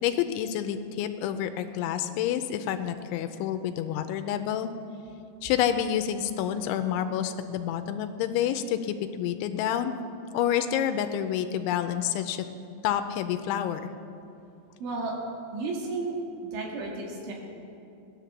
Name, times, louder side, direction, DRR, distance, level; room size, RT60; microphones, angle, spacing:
voice 1, 0.0-4.7 5.4-9.9 10.3-12.4 12.8-13.8, left 10 dB, 85° left, 8 dB, 3.0 m, -28 dB
voice 2, 14.8-15.2 15.5-16.1 16.5-17.3, right 3 dB, 80° right, -1 dB, 4.4 m, -32 dB
17.5 x 11.0 x 7.2 m, 2.8 s
omnidirectional pair, 5.4 m